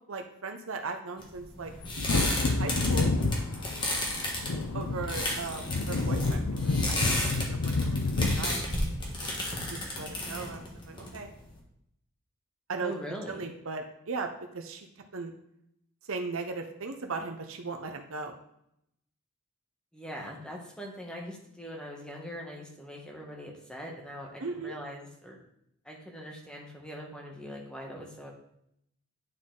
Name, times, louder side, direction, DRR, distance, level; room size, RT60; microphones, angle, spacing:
voice 1, 0.1-1.7 2.1-3.1 4.7-9.3 9.7-11.3 12.7-12.9 13.3-14.9 15.1-15.3 16.1-18.3 24.4-24.7, right 4 dB, 65° right, 5 dB, 0.8 m, -38 dB
sound 1, 1.2-11.6, left 1 dB, 20° left, 1.3 m, -33 dB
Wind / Thunder, 1.8-10.1 10.4-10.5, left 3 dB, 85° left, 0.6 m, -30 dB
voice 2, 12.8-13.5 19.9-25.4 25.8-28.3, equal, 5° left, -1 dB, 1.2 m, -42 dB
9.3 x 4.1 x 3.8 m, 0.76 s
head